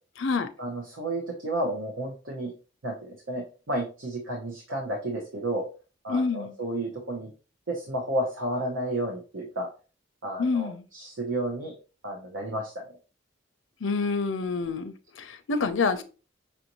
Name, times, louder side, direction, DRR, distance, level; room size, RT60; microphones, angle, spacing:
voice 1, 0.6-2.5 2.8-5.6 6.0-7.3 7.7-9.7 10.2-11.7 12.0-12.7, right 1 dB, 80° right, 0.9 m, -31 dB
voice 2, 6.1-6.5 10.4-10.8 13.8-16.0, left 4 dB, 75° left, 0.5 m, -27 dB
5.7 x 2.6 x 2.9 m
head